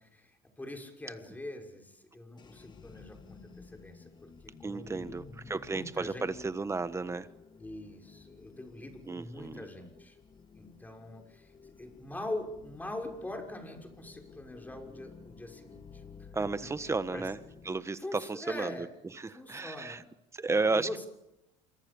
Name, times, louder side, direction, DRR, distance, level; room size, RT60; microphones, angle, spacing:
voice 1, 0.0-6.3 7.6-10.2 10.5-16.3 17.1-17.3 18.0-18.9 19.3-20.0 20.7-21.1, left 1 dB, 10° left, 3 dB, 6.3 m, -43 dB
sound 1, 2.4-17.9, left 5 dB, 25° left, 1.9 m, -54 dB
voice 2, 4.6-7.3 9.1-9.7 16.3-17.4 17.6-18.9 19.2-20.0 20.3-21.0, right 3 dB, 15° right, 13 dB, 1.4 m, -33 dB
28.0 x 23.5 x 7.2 m, 0.88 s
cardioid pair, 120°, 17 cm